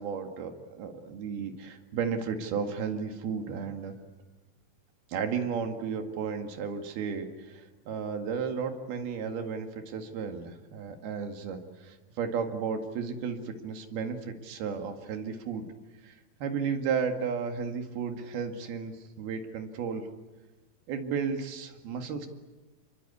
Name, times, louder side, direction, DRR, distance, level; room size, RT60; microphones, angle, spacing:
voice 1, 0.0-3.9 5.1-15.7 16.0-20.1 20.9-22.3, right 6 dB, 80° right, 6 dB, 3.9 m, -34 dB
28.0 x 23.0 x 8.4 m, 1.2 s
omnidirectional pair, 4.4 m